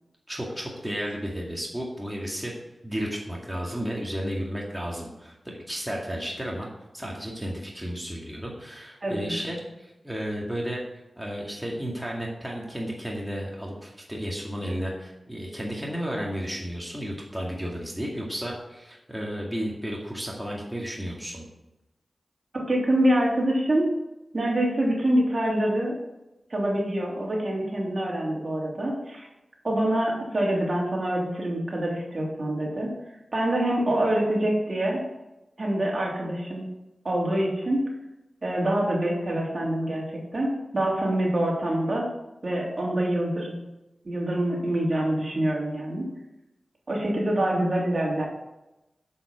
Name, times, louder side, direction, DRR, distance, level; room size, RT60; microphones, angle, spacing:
voice 1, 0.3-2.5 2.8-6.7 6.9-10.8 11.2-21.4, equal, 5° right, -3 dB, 2.0 m, -33 dB
voice 2, 22.5-23.9 24.3-25.9 26.5-29.3 29.6-32.9 33.3-35.0 35.6-36.7 37.0-37.8 38.4-40.0 40.3-42.1 42.4-43.5 44.0-46.1 46.9-48.3, right 1 dB, 45° right, -2 dB, 3.0 m, -25 dB
7.7 x 7.3 x 6.0 m, 0.95 s
wide cardioid pair, 65°, 0 cm